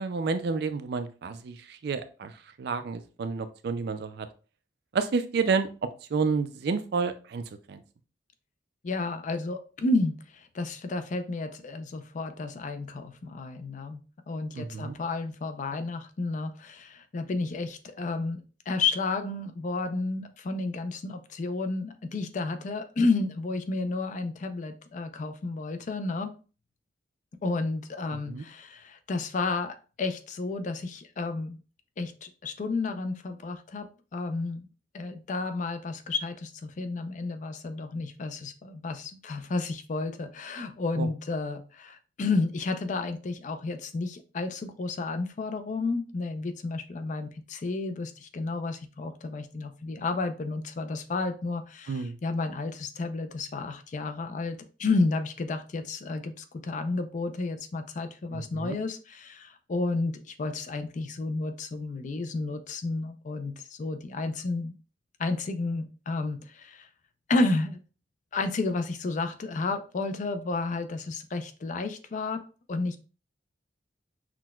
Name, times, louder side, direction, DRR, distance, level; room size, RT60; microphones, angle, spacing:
voice 1, 0.0-4.3 4.9-7.8 14.5-15.0 28.3-28.5 41.0-41.1 51.9-52.2 58.3-58.8, right 4 dB, 60° right, 10 dB, 0.4 m, -30 dB
voice 2, 8.8-14.0 14.3-26.3 27.4-31.6 32.0-34.7 34.9-64.7 65.2-66.9 67.3-67.8 68.3-73.0, left 3 dB, 45° left, 9 dB, 0.4 m, -31 dB
5.9 x 2.2 x 2.3 m, 0.35 s
head